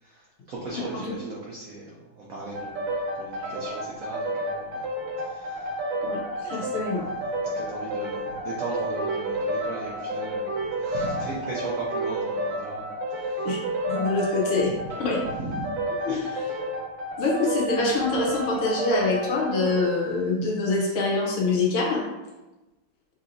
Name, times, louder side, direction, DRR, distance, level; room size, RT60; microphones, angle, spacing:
voice 1, 0.0-2.9 3.2-4.8 5.2-5.9 6.5-6.7 7.4-13.6 14.1-14.2 14.9-15.1 15.4-15.8 16.1-16.6, right 2 dB, 85° right, -4 dB, 0.7 m, -38 dB
voice 2, 0.7-1.1 6.0-7.0 13.4-13.6 13.9-14.7 15.0-15.2 16.1-16.4 17.2-22.0, left 3 dB, 85° left, -3 dB, 1.9 m, -25 dB
sound 1, 2.5-20.0, right 1 dB, 65° right, 1.5 m, -30 dB
5.8 x 2.8 x 2.6 m, 1.1 s
omnidirectional pair, 2.3 m